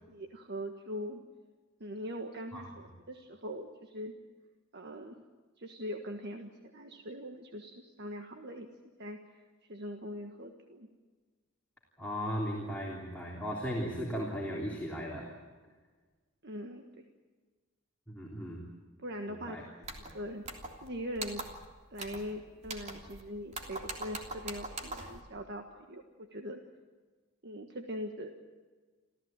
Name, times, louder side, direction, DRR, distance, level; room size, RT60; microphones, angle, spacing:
voice 1, 0.1-1.2 1.8-4.1 4.7-5.2 5.6-8.7 9.0-9.4 9.7-10.9 16.4-17.0 19.0-20.4 20.8-21.4 21.9-26.6 27.4-28.4, equal, 55° right, 5 dB, 1.5 m, -42 dB
voice 2, 12.0-15.4 18.1-18.6 19.3-19.6, equal, 5° left, -3 dB, 3.4 m, -36 dB
sound 1, 19.8-20.1 20.5-20.9 21.2-21.7 22.0-22.3 22.6-23.2 23.5-25.2, right 2 dB, 35° right, 3.1 m, -42 dB
27.5 x 15.0 x 9.0 m, 1.4 s
head